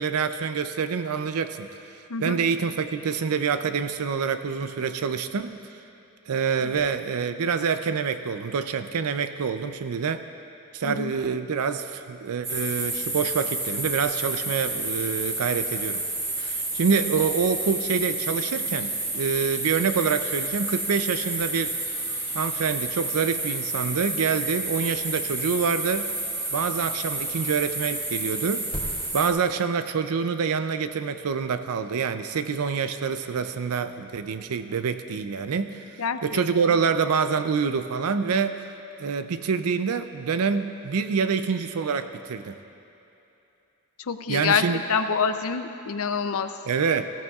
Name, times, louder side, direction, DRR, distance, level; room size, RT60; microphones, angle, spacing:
voice 1, 0.0-1.7 2.2-5.6 6.3-10.2 10.7-16.0 16.4-21.8 22.3-26.1 26.5-28.6 29.1-38.6 39.0-42.6 44.3-44.8 46.7-47.1, right 6 dB, 80° right, 10 dB, 0.5 m, -26 dB
voice 2, 10.8-11.1 36.0-36.4 44.1-44.6 44.9-46.5, left 6 dB, 70° left, 9 dB, 0.6 m, -26 dB
sound 1, 12.4-29.3, right 2 dB, 25° right, 2.2 m, -30 dB
17.5 x 15.5 x 2.4 m, 2.9 s
head